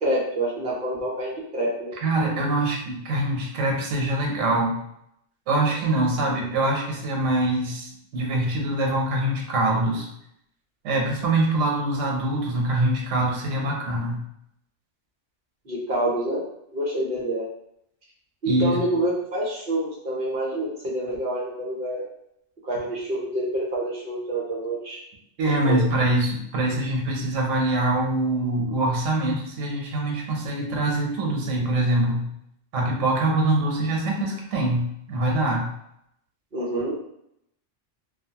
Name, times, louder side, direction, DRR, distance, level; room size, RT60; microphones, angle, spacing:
voice 1, 0.0-1.9 15.7-16.4 16.7-17.4 18.4-22.0 22.6-25.0 25.6-25.8 36.5-36.9, right 1 dB, 50° right, -4 dB, 0.9 m, -27 dB
voice 2, 2.0-4.8 5.5-10.1 10.8-14.2 18.4-18.8 25.4-32.2 32.7-35.7, right 2 dB, 85° right, -1 dB, 1.1 m, -24 dB
2.5 x 2.4 x 2.8 m, 0.76 s
omnidirectional pair, 1.3 m